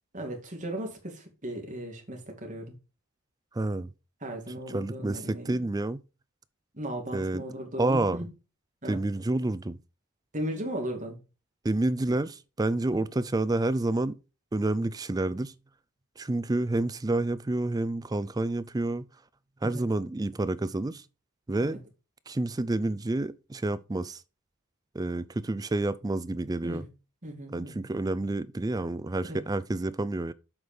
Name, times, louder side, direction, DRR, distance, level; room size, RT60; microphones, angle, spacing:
voice 1, 0.1-2.7 4.2-5.6 6.7-8.3 8.8-9.0 10.3-11.2 12.1-12.2 19.6-19.8 21.6-21.8 26.6-26.9 27.2-27.9 29.3-29.4, right 1 dB, 35° right, 2.3 m, -36 dB
voice 2, 3.5-3.9 4.7-6.0 7.1-7.4 7.8-8.3 8.9-9.8 11.6-14.2 14.5-15.5 16.2-19.1 19.6-21.0 21.5-21.8 22.3-24.2 24.9-26.8 27.5-30.3, right 2 dB, 15° right, 0.4 m, -29 dB
7.9 x 5.1 x 5.2 m
head